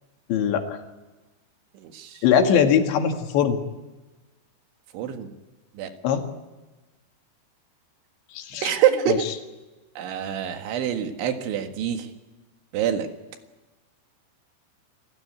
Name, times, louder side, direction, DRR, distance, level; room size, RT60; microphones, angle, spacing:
voice 1, 0.3-0.8 2.2-3.6 6.0-6.2 8.4-8.7 9.1-9.2, left 8 dB, 75° left, 5 dB, 4.1 m, -21 dB
voice 2, 1.8-2.2 4.9-5.3 5.8-5.9 8.6-9.3 10.0-12.1 12.7-13.1, right 9 dB, 90° right, 6 dB, 4.1 m, -25 dB
28.5 x 15.5 x 9.4 m, 1.2 s
omnidirectional pair, 5.2 m